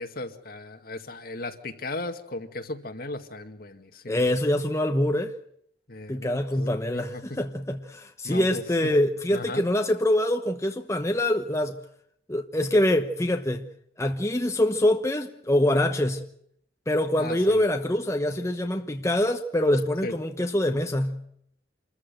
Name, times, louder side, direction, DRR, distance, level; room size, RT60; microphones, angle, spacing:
voice 1, 0.0-4.2 5.9-7.4 8.2-8.9 9.3-9.7 17.2-17.6 20.0-20.1, left 2 dB, 60° left, 2.1 m, -36 dB
voice 2, 4.1-5.3 6.1-11.8 12.3-13.7 14.0-16.2 16.9-21.2, left 1 dB, 15° left, 1.0 m, -24 dB
27.0 x 14.0 x 9.0 m
head